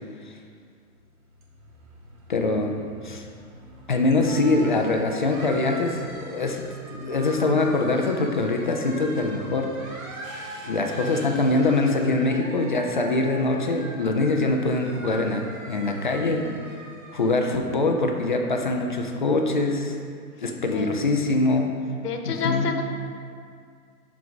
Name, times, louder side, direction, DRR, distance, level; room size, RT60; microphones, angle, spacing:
sound 1, 0.9-17.3, right 2 dB, 60° right, 1.6 m, -42 dB
voice 1, 2.3-3.2 3.9-6.6 6.9-9.7 10.6-16.5 17.1-19.9 20.4-21.7 22.2-22.7, left 2 dB, 35° left, 2 dB, 0.4 m, -23 dB
voice 2, 22.0-22.8, left 5 dB, 85° left, 5 dB, 1.1 m, -28 dB
10.5 x 4.6 x 4.0 m, 2.2 s
hypercardioid pair, 170°, 46 cm